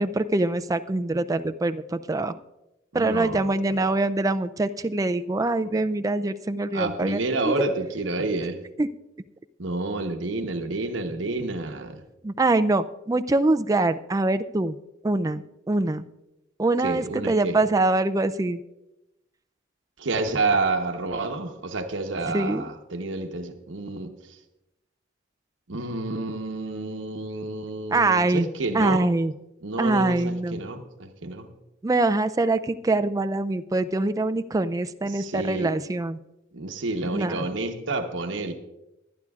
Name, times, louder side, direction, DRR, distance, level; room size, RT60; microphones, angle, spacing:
voice 1, 0.0-2.4 2.9-7.2 7.4-7.5 8.8-8.9 12.2-14.8 15.0-16.1 16.6-18.6 22.2-22.7 27.9-28.5 28.7-29.3 29.8-30.6 31.8-36.2 37.1-37.4, right 2 dB, 20° right, 10 dB, 0.4 m, -24 dB
voice 2, 2.9-3.5 5.6-5.7 6.7-8.6 9.6-12.0 16.8-17.6 20.0-24.4 25.7-29.1 29.6-31.5 35.0-35.7 36.5-38.5, right 2 dB, 85° right, 5 dB, 1.0 m, -29 dB
23.5 x 9.7 x 2.4 m, 0.94 s
head